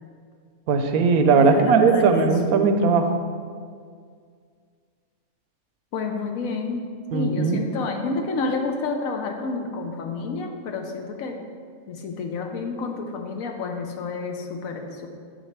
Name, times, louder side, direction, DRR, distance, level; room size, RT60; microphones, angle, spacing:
voice 1, 0.7-3.1 7.1-7.7, right 4 dB, 85° right, 6 dB, 1.1 m, -18 dB
voice 2, 1.3-2.3 5.9-11.4 11.9-15.1, left 3 dB, 75° left, 4 dB, 1.1 m, -29 dB
7.9 x 6.4 x 3.3 m, 2.1 s
omnidirectional pair, 1.5 m